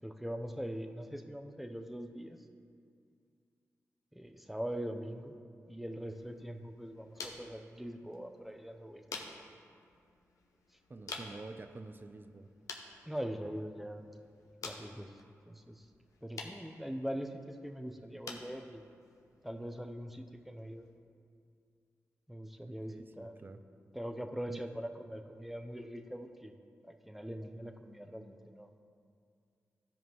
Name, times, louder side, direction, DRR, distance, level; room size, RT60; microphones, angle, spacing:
voice 1, 0.0-2.4 4.1-5.4 5.7-9.2 13.1-14.0 14.6-15.2 15.5-15.9 16.2-18.8 19.4-20.9 22.3-23.3 23.9-26.5 26.8-28.7, equal, 5° right, 5 dB, 0.7 m, -42 dB
sound 1, 6.0-21.0, left 4 dB, 80° left, 0.7 m, -51 dB
voice 2, 10.9-12.5 22.6-23.6 24.5-24.6, right 3 dB, 35° right, 9 dB, 0.5 m, -48 dB
13.5 x 5.2 x 3.1 m, 2.3 s
supercardioid pair, 45°, 6 cm